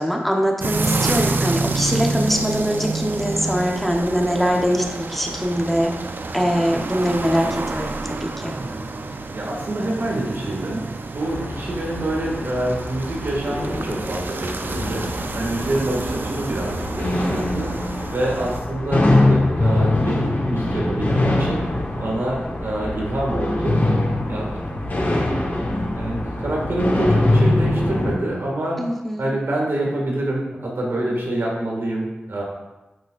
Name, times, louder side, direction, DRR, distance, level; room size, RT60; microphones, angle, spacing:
voice 1, 0.0-5.9 6.3-8.5 28.8-29.3, equal, 5° left, 0 dB, 1.0 m, -22 dB
sound 1, 0.6-18.6, right 3 dB, 60° right, 0.5 m, -28 dB
voice 2, 8.5-8.8 9.3-10.8 11.1-17.7 18.1-21.6 22.0-23.8 24.3-24.5 25.9-28.8 29.2-32.4, right 1 dB, 75° right, -2 dB, 2.0 m, -26 dB
sound 2, 11.2-28.1, left 2 dB, 50° left, 1.5 m, -23 dB
9.0 x 6.2 x 2.5 m, 1.0 s
wide cardioid pair, 60°, 4 cm